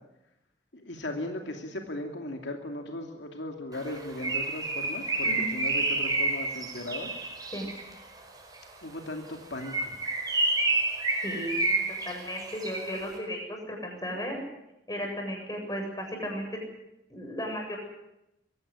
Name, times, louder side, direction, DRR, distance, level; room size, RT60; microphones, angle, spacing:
voice 1, 0.8-7.1 8.8-9.9, left 1 dB, 75° left, 3 dB, 2.6 m, -37 dB
Bird, 3.8-7.9 9.5-13.1, right 2 dB, 20° right, 4.8 m, -29 dB
voice 2, 11.2-14.4 14.9-16.5 17.1-17.8, equal, 20° left, 2 dB, 7.8 m, -35 dB
24.0 x 17.0 x 9.9 m, 0.87 s
head